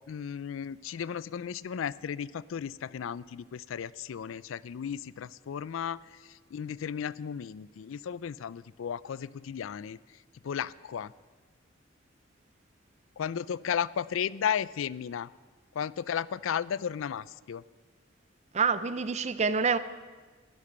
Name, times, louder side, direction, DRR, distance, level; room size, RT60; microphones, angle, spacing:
voice 1, 0.1-11.1 13.2-15.3 15.7-17.6, left 8 dB, 85° left, 0.4 m, -34 dB
voice 2, 18.5-19.8, right 5 dB, 35° right, 0.6 m, -27 dB
12.0 x 11.5 x 6.7 m
head